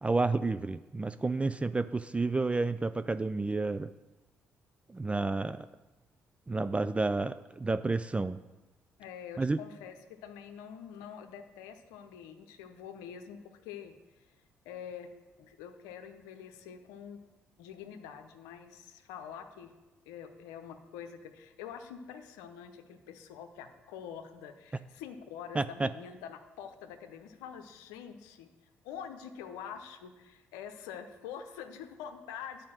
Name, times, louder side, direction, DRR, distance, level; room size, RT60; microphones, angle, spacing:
voice 1, 0.0-3.9 4.9-5.7 6.5-8.4 9.4-9.6 25.5-25.9, right 3 dB, 20° right, 12 dB, 0.4 m, -30 dB
voice 2, 9.0-14.3 14.6-15.1 15.4-17.2 17.6-19.7 20.1-28.5 28.8-32.7, left 8 dB, 85° left, 7 dB, 0.7 m, -46 dB
9.5 x 5.1 x 7.4 m, 1.1 s
hypercardioid pair, 55°, 6 cm